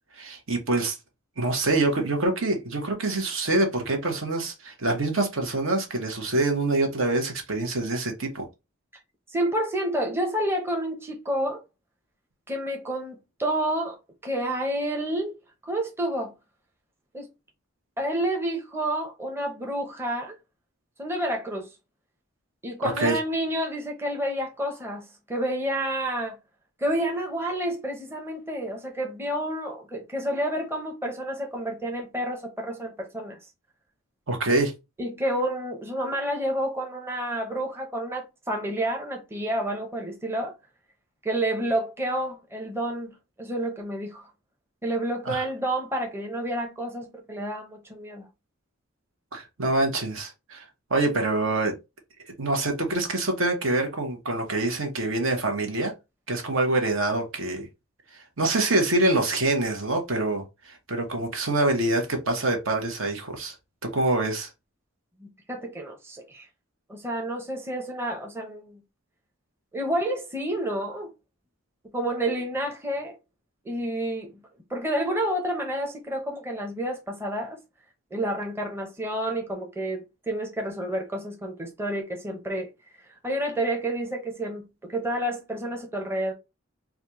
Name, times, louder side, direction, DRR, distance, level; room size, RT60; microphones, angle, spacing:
voice 1, 0.2-1.0 1.4-8.5 22.8-23.2 34.3-34.7 45.2-45.5 49.3-50.6 50.9-51.7 52.4-55.9 56.3-57.7 58.4-63.5 63.8-64.5, right 2 dB, 65° right, 1.1 m, -25 dB
voice 2, 9.3-11.6 12.5-14.0 14.2-15.4 15.6-16.3 17.1-17.3 18.0-20.4 21.0-21.7 22.6-26.4 26.8-33.4 35.0-40.6 41.2-43.1 43.4-44.3 44.8-48.3 65.2-66.5 66.9-68.8 69.7-71.1 71.9-73.2 73.6-74.4 74.7-77.6 78.1-82.7 83.2-86.3, right 1 dB, 10° right, 0.7 m, -29 dB
4.1 x 2.4 x 3.0 m
head